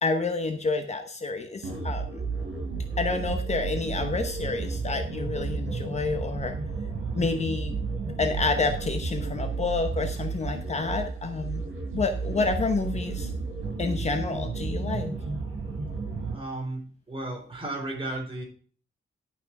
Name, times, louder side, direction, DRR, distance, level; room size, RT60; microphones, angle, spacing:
voice 1, 0.0-2.2 3.0-6.6 7.1-7.8 8.2-11.6 11.9-13.3 13.8-15.1, left 4 dB, 30° left, 5 dB, 1.0 m, -29 dB
sound 1, 1.6-16.4, right 4 dB, 80° right, 5.0 m, -32 dB
voice 2, 16.3-18.4, right 2 dB, 25° right, 0 dB, 4.1 m, -34 dB
11.5 x 6.0 x 5.9 m, 0.43 s
wide cardioid pair, 170°, 21 cm